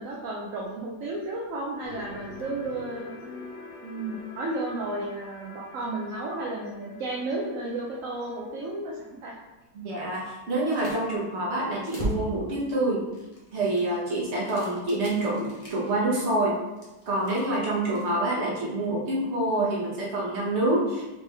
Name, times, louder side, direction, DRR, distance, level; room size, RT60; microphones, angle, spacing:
voice 1, 0.0-3.1 3.8-9.3, right 2 dB, 65° right, -4 dB, 0.9 m, -33 dB
sound 1, 1.8-8.8, left 3 dB, 70° left, 1.4 m, -45 dB
sound 2, 9.6-9.7 10.4-11.2 11.6-12.7 13.1-16.0 16.6-18.2, equal, 25° left, 0.9 m, -38 dB
voice 2, 9.7-13.0 13.5-16.6 17.1-21.0, right 1 dB, 45° right, -4 dB, 1.2 m, -27 dB
4.4 x 3.3 x 3.3 m, 1.1 s
omnidirectional pair, 1.8 m